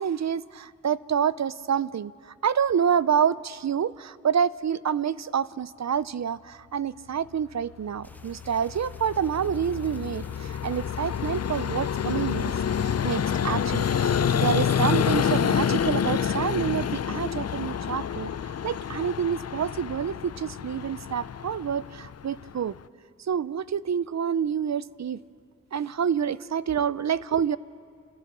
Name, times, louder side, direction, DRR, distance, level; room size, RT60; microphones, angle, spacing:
voice 1, 0.0-12.5 12.8-18.3 18.6-22.7 23.2-25.2 25.7-27.6, right 8 dB, 65° right, 18 dB, 0.5 m, -28 dB
sound 1, 8.0-15.8, left 1 dB, 5° left, 0.8 m, -50 dB
Vehicle, 8.1-22.8, left 8 dB, 55° left, 0.4 m, -28 dB
29.0 x 15.0 x 6.0 m, 2.2 s
wide cardioid pair, 80°, 30 cm